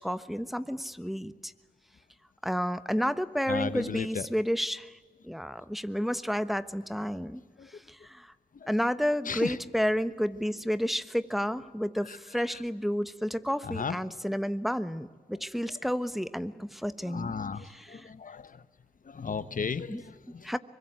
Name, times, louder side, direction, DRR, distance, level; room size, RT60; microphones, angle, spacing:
voice 1, 0.0-1.5 2.4-5.0 5.2-7.4 7.7-8.3 8.7-17.3 17.7-18.1 19.9-20.0 20.4-20.6, equal, ahead, 13 dB, 1.2 m, -31 dB
voice 2, 3.5-4.3 7.6-7.7 8.5-8.7 9.2-9.6 12.0-12.2 12.5-12.6 13.6-14.2 15.6-15.7 17.0-18.6 19.0-20.5, left 5 dB, 65° left, 14 dB, 1.1 m, -35 dB
24.0 x 21.5 x 9.3 m, 1.4 s
cardioid pair, 45°, 15 cm